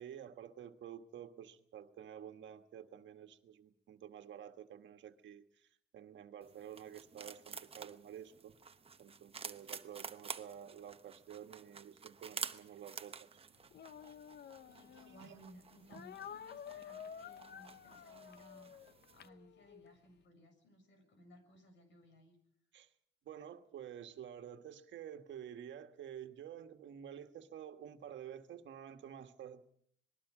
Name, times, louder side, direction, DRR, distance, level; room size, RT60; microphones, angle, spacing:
voice 1, 0.0-8.6 9.0-13.2 15.2-15.4 15.9-16.0 22.7-22.9 23.2-29.6, right 9 dB, 70° right, 6 dB, 1.6 m, -50 dB
sound 1, 6.4-19.3, right 5 dB, 30° right, 1.0 m, -50 dB
Speech, 13.7-15.3 15.9-19.9, left 8 dB, 55° left, 0.8 m, -51 dB
voice 2, 14.7-22.4, equal, 70° left, 8 dB, 7.3 m, -61 dB
26.5 x 21.0 x 5.0 m, 0.65 s
cardioid pair, 90°, 20 cm